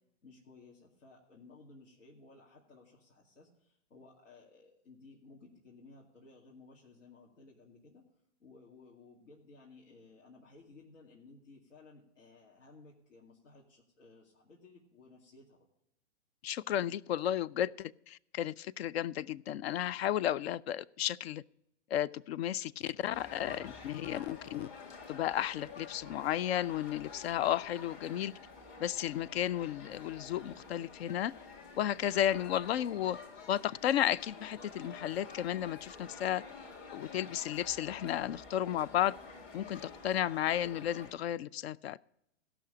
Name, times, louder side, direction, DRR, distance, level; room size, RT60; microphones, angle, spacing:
voice 1, 0.2-8.0 8.4-15.7, left 3 dB, 80° left, 2.4 m, -57 dB
voice 2, 16.4-21.4 21.9-24.7 25.1-28.3 28.8-31.3 31.7-33.2 33.5-36.4 36.9-39.2 39.5-42.0, left 11 dB, 55° left, 0.5 m, -33 dB
sound 1, 23.1-41.1, left 4 dB, 35° left, 2.0 m, -50 dB
16.5 x 6.1 x 5.1 m
hypercardioid pair, 120°, 37 cm